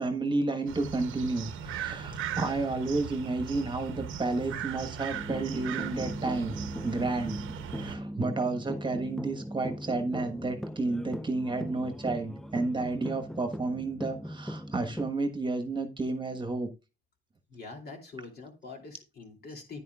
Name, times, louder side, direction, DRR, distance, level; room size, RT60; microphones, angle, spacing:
voice 1, 0.0-6.6 6.8-7.4 7.7-16.7, right 3 dB, 25° right, 1.3 m, -31 dB
sound 1, 0.7-8.0, right 8 dB, 85° right, 0.9 m, -38 dB
sound 2, 5.1-15.1, equal, ahead, 0.4 m, -39 dB
voice 2, 17.5-19.8, left 3 dB, 55° left, 2.9 m, -44 dB
9.9 x 9.3 x 2.4 m
cardioid pair, 90°, 20 cm